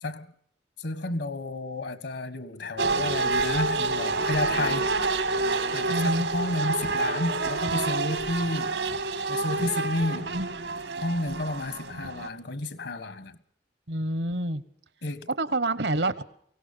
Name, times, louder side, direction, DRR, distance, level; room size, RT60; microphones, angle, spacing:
voice 1, 0.8-4.9 5.7-8.8 9.3-10.3 11.0-13.4 15.0-15.3, left 2 dB, 75° left, 1.7 m, -31 dB
sound 1, 2.8-12.3, right 3 dB, 85° right, 2.4 m, -28 dB
voice 2, 5.9-6.3 13.9-14.6 15.4-16.2, right 1 dB, 65° right, 1.2 m, -27 dB
23.5 x 17.5 x 6.9 m
head